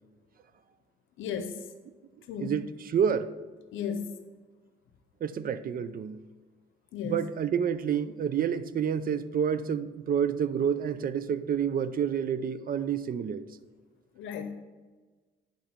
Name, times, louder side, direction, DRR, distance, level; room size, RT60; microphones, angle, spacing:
voice 1, 1.2-1.7 2.3-2.6 3.7-4.2 6.9-7.2 14.1-14.5, left 7 dB, 80° left, 8 dB, 0.7 m, -34 dB
voice 2, 2.4-3.3 5.2-6.2 7.0-13.4, right 8 dB, 45° right, 13 dB, 0.5 m, -29 dB
10.5 x 3.9 x 4.3 m, 1.3 s
cardioid pair, 90°, 20 cm